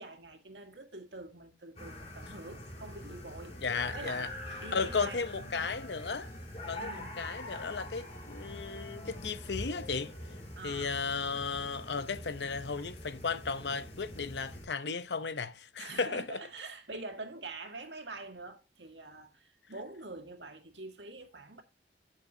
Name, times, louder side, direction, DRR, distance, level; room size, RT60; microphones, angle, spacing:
voice 1, 0.0-3.6 3.9-4.3 4.6-5.7 6.8-7.2 10.6-11.0 15.8-21.6, right 2 dB, 80° right, 1.9 m, -45 dB
sound 1, 1.8-14.7, equal, 35° left, 2.8 m, -44 dB
Wind instrument woodwind instrument, 2.6-6.7 7.6-11.0, left 3 dB, 55° left, 3.4 m, -56 dB
voice 2, 3.6-4.3 4.7-6.3 6.7-10.1 10.6-16.4, left 5 dB, 70° left, 0.8 m, -35 dB
11.5 x 6.6 x 2.8 m
head